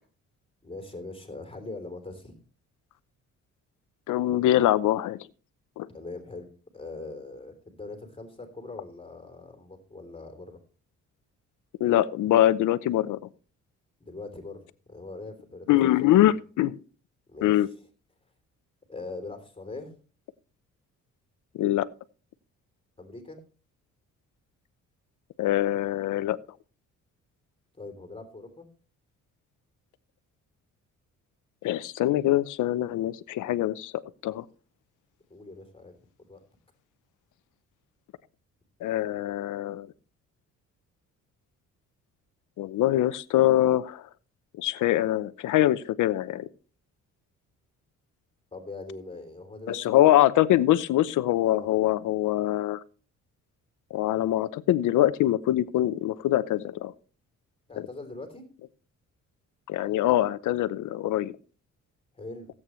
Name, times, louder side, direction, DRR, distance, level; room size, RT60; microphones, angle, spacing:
voice 1, 0.6-2.3 5.9-6.5 6.7-10.6 14.0-16.3 17.3-17.7 18.9-19.9 23.0-23.4 27.8-28.7 35.3-36.4 48.5-50.0 51.4-51.7 57.7-58.4 62.1-62.5, left 3 dB, 20° left, 6 dB, 3.3 m, -41 dB
voice 2, 4.1-5.2 5.8-5.9 11.8-13.2 15.7-16.7 17.4-17.7 21.6-21.9 25.4-26.4 31.6-34.4 38.8-39.9 42.6-44.0 44.6-46.5 49.7-52.8 53.9-56.9 57.8-57.9 59.7-61.3, left 13 dB, 80° left, 16 dB, 0.8 m, -23 dB
16.5 x 8.7 x 3.1 m, 0.38 s
cardioid pair, 90°, 30 cm